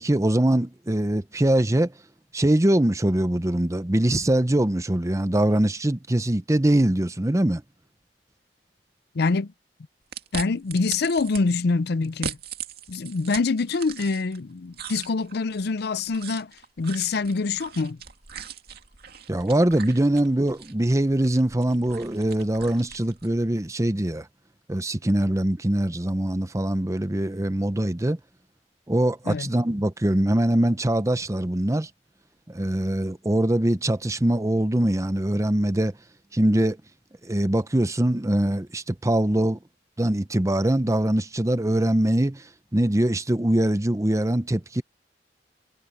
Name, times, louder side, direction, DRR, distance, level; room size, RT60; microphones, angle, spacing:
voice 1, 0.0-1.9 2.3-7.6 19.3-24.3 24.7-28.2 28.9-31.9 32.5-35.9 36.3-36.8 37.2-39.6 40.0-42.4 42.7-44.8, right 1 dB, 15° right, 0.8 m, -23 dB
voice 2, 9.1-9.5 10.3-12.4 12.9-16.5 16.8-18.0 29.3-29.5, left 4 dB, 65° left, 0.5 m, -25 dB
sound 1, 10.1-11.4 12.0-14.4 14.7-23.4, right 7 dB, 60° right, 2.3 m, -40 dB
head